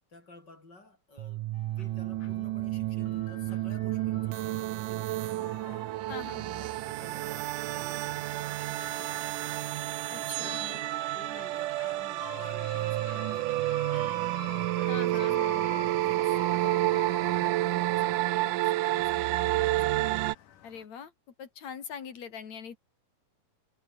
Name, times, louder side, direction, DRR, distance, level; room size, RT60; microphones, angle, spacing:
voice 1, 0.1-5.9 6.3-9.6 10.1-14.3 14.9-20.4, left 2 dB, 30° left, 5.8 m, -53 dB
sound 1, 1.2-20.3, right 17 dB, 85° right, 2.4 m, -30 dB
sound 2, 1.5-20.9, left 10 dB, 80° left, 3.4 m, -49 dB
voice 2, 6.1-6.4 10.1-10.8 14.9-15.7 20.6-21.1 21.4-22.8, left 7 dB, 60° left, 3.9 m, -42 dB
omnidirectional pair, 3.7 m